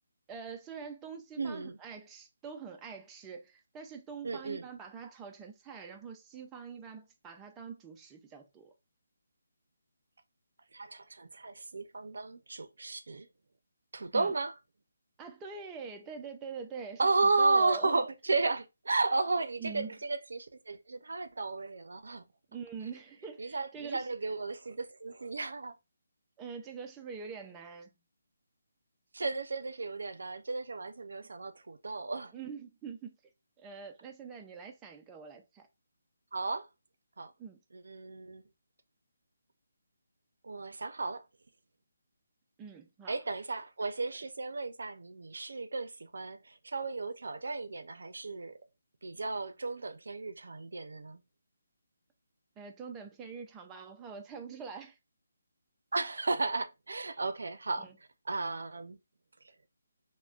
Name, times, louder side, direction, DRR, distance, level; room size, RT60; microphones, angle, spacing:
voice 1, 0.3-8.7 14.1-14.3 15.2-18.1 19.6-19.9 22.5-24.1 26.4-27.9 31.2-31.3 32.3-33.2 33.6-35.7 37.4-37.6 42.6-43.2 52.6-55.0 57.8-58.0, right 6 dB, 10° right, 0.3 m, -44 dB
voice 2, 1.4-1.8 4.2-4.7 10.7-13.3 13.9-14.5 17.0-22.2 23.4-25.7 29.1-32.3 36.3-36.7 37.2-37.3 37.7-38.4 40.4-41.2 43.1-48.6 49.0-51.2 55.9-57.9 58.3-59.0, right 3 dB, 75° right, 0.5 m, -33 dB
3.6 x 2.1 x 2.3 m
hypercardioid pair, 175°, 0 cm